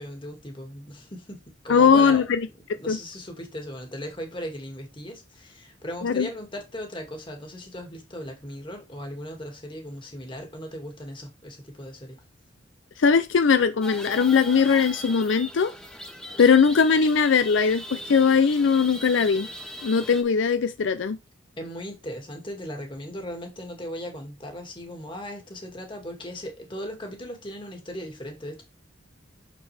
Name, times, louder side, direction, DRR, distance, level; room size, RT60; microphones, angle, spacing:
voice 1, 0.0-2.3 2.7-12.2 21.6-28.6, equal, 25° left, 2.0 m, -38 dB
voice 2, 1.7-2.5 2.9-3.0 6.0-6.3 13.0-15.7 16.4-19.5 19.8-21.2, left 6 dB, 70° left, 0.5 m, -20 dB
sound 1, 13.8-20.2, left 1 dB, 5° left, 0.9 m, -39 dB
6.5 x 6.1 x 3.3 m
head